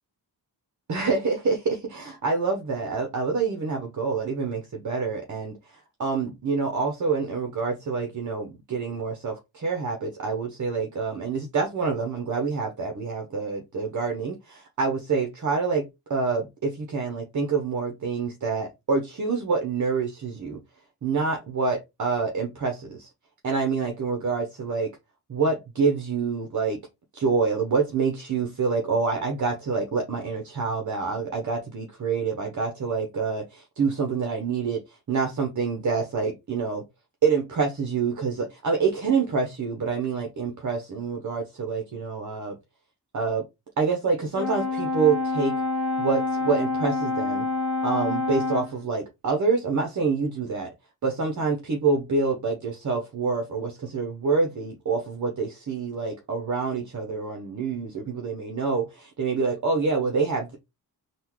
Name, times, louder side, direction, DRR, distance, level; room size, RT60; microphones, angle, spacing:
voice 1, 0.9-20.6 21.0-23.1 23.4-24.9 25.3-26.8 27.1-36.8 37.2-42.6 43.1-43.4 43.8-45.6 46.0-47.5 47.8-50.7 51.0-60.6, right 4 dB, 45° right, 0.9 m, -27 dB
Brass instrument, 44.4-48.8, left 3 dB, ahead, 1.5 m, -27 dB
3.7 x 2.5 x 3.1 m
cardioid pair, 85°, 41 cm